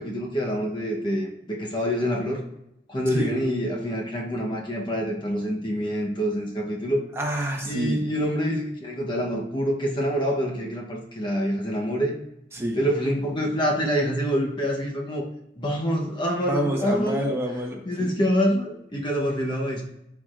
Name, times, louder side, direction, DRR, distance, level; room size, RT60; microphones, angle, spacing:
voice 1, 0.0-2.4 2.9-7.0 7.6-12.2 12.7-15.3 15.6-17.3 17.8-19.8, equal, 25° left, -1 dB, 0.9 m, -26 dB
voice 2, 7.2-7.9 12.5-12.8 16.5-18.1, equal, 15° right, 0 dB, 1.2 m, -27 dB
13.0 x 4.7 x 2.5 m, 0.83 s
head